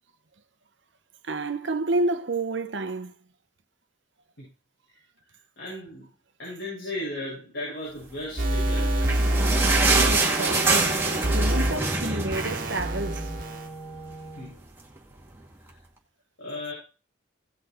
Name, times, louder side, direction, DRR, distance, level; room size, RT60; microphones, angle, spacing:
voice 1, 1.2-3.1 9.8-11.1 11.3-13.3, right 2 dB, 70° right, 1.1 m, -29 dB
voice 2, 5.6-9.1 14.4-14.6 16.4-16.7, left 1 dB, 70° left, 6.8 m, -36 dB
sound 1, 8.4-11.7 12.3-13.6, right 1 dB, 50° right, 1.7 m, -26 dB
sound 2, 8.7-13.4 13.7-13.8 14.1-14.3 15.0-15.1, right 3 dB, 10° right, 2.2 m, -25 dB
Wind instrument woodwind instrument, 10.0-14.6, right 1 dB, 20° left, 1.6 m, -41 dB
17.0 x 6.0 x 4.6 m
head